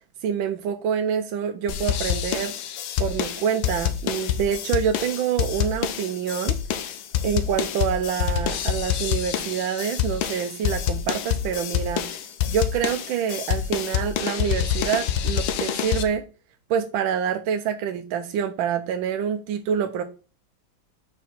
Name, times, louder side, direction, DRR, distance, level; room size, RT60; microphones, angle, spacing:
voice 1, 0.2-2.5 3.0-6.6 7.2-12.2 12.5-16.2 16.7-20.0, right 8 dB, 80° right, 6 dB, 1.4 m, -26 dB
sound 1, 1.7-16.0, left 10 dB, 80° left, 1.5 m, -27 dB
5.2 x 4.6 x 5.7 m, 0.35 s
omnidirectional pair, 2.1 m